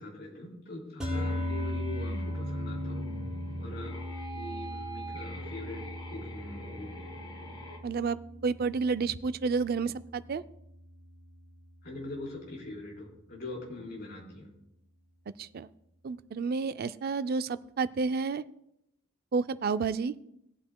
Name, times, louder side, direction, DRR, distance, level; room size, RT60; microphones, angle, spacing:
voice 1, 0.0-3.0 3.6-4.0 4.3-6.9 11.8-14.5, left 2 dB, 50° left, -3 dB, 3.9 m, -42 dB
sound 1, 1.0-11.4, left 1 dB, 5° right, 3.3 m, -38 dB
sound 2, 1.1-7.8, right 1 dB, 25° left, 1.7 m, -43 dB
voice 2, 7.8-10.4 15.4-15.7 16.0-18.4 19.3-20.1, right 4 dB, 45° right, 13 dB, 0.4 m, -30 dB
18.5 x 8.5 x 2.2 m, 0.79 s
head